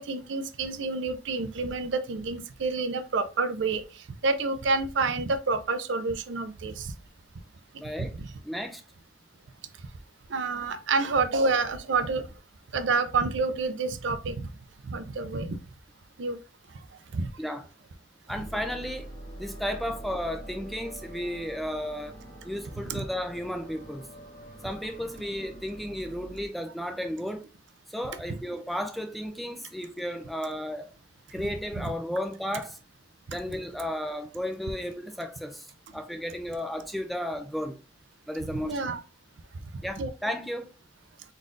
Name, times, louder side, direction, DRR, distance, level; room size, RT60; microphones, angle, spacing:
voice 1, 0.0-6.9 10.3-12.3 12.7-14.5 14.8-15.6 16.2-16.4 17.1-17.3 22.9-23.0 33.3-33.4 38.5-39.0 40.0-40.1, right 3 dB, 70° right, 0.5 m, -28 dB
voice 2, 7.8-8.2 8.4-8.8 17.4-17.7 18.3-19.1 19.4-22.2 22.4-24.1 24.6-27.5 27.9-30.9 31.3-32.8 33.3-37.8 38.3-38.8 39.8-40.7, equal, ahead, 0.3 m, -33 dB
sound 1, 18.3-26.5, right 1 dB, 55° left, 2.3 m, -45 dB
4.0 x 3.7 x 2.5 m
head